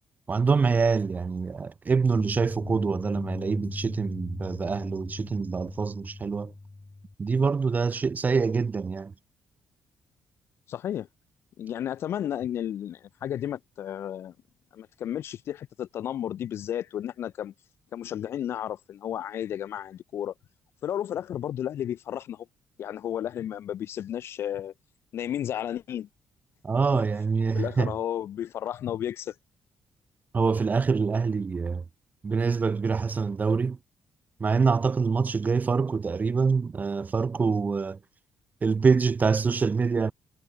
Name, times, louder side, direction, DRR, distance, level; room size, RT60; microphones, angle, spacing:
voice 1, 0.3-6.5 7.2-9.1 26.6-27.9 30.3-31.8 32.2-33.8 34.4-38.0 38.6-40.1, right 5 dB, 35° right, 1.0 m, -25 dB
sound 1, 2.2-7.1, left 2 dB, 20° left, 2.8 m, -39 dB
voice 2, 10.7-11.1 11.6-14.3 14.7-17.5 17.9-20.3 20.8-22.5 22.8-24.7 25.1-26.1 26.9-27.0 27.5-29.3, left 10 dB, 55° left, 0.5 m, -33 dB
figure-of-eight pair, 40°, 5 cm